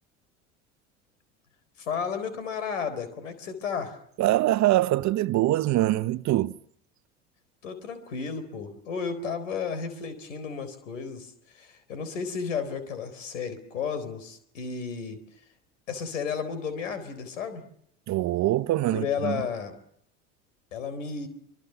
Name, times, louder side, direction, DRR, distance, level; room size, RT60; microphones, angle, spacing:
voice 1, 1.8-4.0 7.6-15.2 15.9-17.6 18.9-19.7 20.7-21.3, left 6 dB, 85° left, 4.1 m, -33 dB
voice 2, 4.2-6.6 18.1-19.4, right 15 dB, 50° right, 0.9 m, -24 dB
24.5 x 24.0 x 7.0 m
hypercardioid pair, 75°, 37 cm